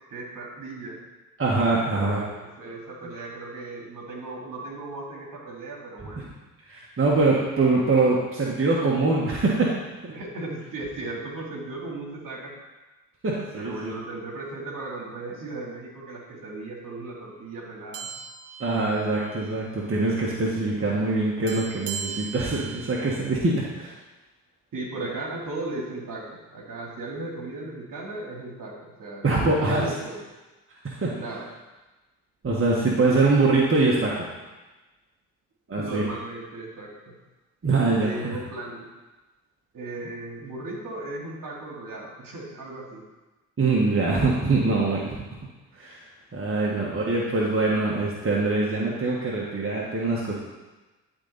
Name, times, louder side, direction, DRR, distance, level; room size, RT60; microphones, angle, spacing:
voice 1, 0.1-1.0 1.9-6.2 10.1-12.5 13.5-18.1 24.7-30.2 31.1-31.5 35.7-37.1 38.0-38.9 39.7-43.0, right 2 dB, 50° right, -2 dB, 2.3 m, -36 dB
voice 2, 1.4-2.2 6.2-6.3 6.7-9.7 10.0-10.1 13.2-13.9 18.6-23.9 29.2-29.9 30.8-31.1 32.4-34.2 35.7-36.0 37.6-38.4 43.6-45.2 45.8-46.0 46.3-50.3, right 3 dB, 30° right, -4 dB, 1.7 m, -23 dB
sound 1, 17.9-19.6 19.9-20.1 21.5-23.2, right 7 dB, 85° right, 0.7 m, -38 dB
11.5 x 4.1 x 4.1 m, 1.1 s
hypercardioid pair, 45°, 43 cm